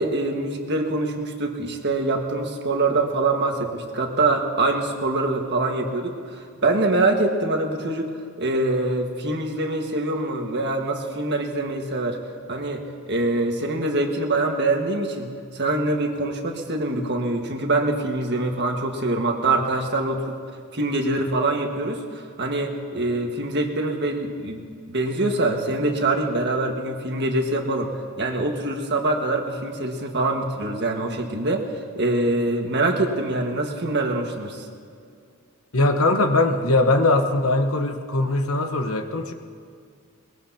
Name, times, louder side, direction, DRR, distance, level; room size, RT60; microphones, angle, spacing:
voice 1, 0.0-8.1 8.4-12.2 12.5-20.4 20.7-22.0 22.4-31.6 31.9-34.6, right 2 dB, 50° right, 2 dB, 1.6 m, -24 dB
voice 2, 35.7-39.3, left 2 dB, 65° left, 5 dB, 1.1 m, -21 dB
22.0 x 21.0 x 2.9 m, 2.3 s
head